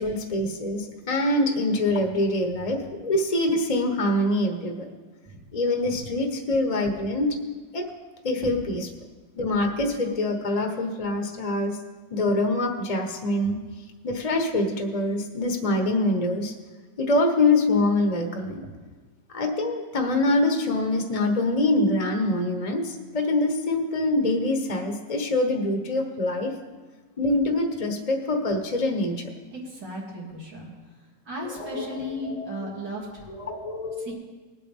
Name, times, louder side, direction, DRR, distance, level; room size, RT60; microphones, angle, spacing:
voice 1, 0.0-4.9 5.5-7.4 7.7-7.9 8.2-8.9 9.4-11.8 12.1-13.6 14.0-16.5 17.0-18.6 19.3-26.5 27.2-29.3 31.6-32.5 33.3-34.1, left 2 dB, 30° left, 4 dB, 0.9 m, -25 dB
voice 2, 29.5-30.7 31.3-33.3 34.0-34.1, equal, 90° right, -4 dB, 3.4 m, -36 dB
19.5 x 8.4 x 3.5 m, 1.4 s
omnidirectional pair, 1.8 m